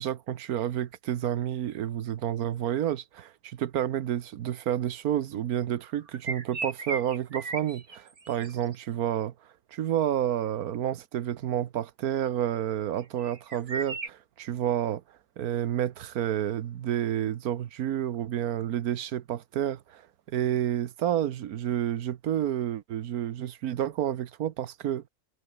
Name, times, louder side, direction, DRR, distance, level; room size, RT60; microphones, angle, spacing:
voice 1, 0.0-9.3 9.7-15.0 15.4-20.0 20.3-25.1, right 11 dB, 85° right, 1.4 m, -30 dB
sound 1, 6.1-8.7 13.0-14.1, right 3 dB, 50° right, 3.0 m, -36 dB
omnidirectional pair, 1.5 m